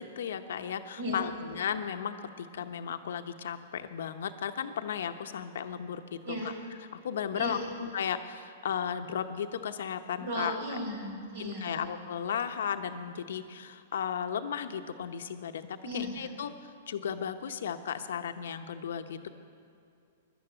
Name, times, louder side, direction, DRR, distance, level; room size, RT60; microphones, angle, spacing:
voice 1, 0.0-6.5 7.0-10.6 11.4-19.3, left 8 dB, 75° left, 8 dB, 0.9 m, -35 dB
voice 2, 10.2-11.8 15.8-16.3, equal, 70° right, 1 dB, 4.2 m, -35 dB
11.0 x 11.0 x 9.0 m, 2.4 s
hypercardioid pair, 135°, 0 cm